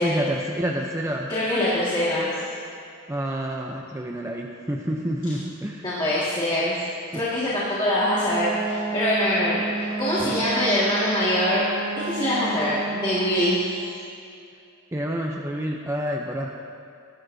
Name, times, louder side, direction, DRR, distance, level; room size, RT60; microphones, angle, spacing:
voice 1, 0.0-1.3 3.1-5.9 7.1-7.2 14.9-16.5, right 1 dB, 15° right, 0 dB, 0.6 m, -28 dB
voice 2, 1.3-2.3 5.8-6.7 7.1-11.6 12.0-13.9, left 1 dB, 20° left, -8 dB, 1.9 m, -24 dB
Wind instrument woodwind instrument, 7.9-13.6, right 3 dB, 35° right, 1.5 m, -31 dB
20.5 x 12.0 x 2.7 m, 2.5 s
head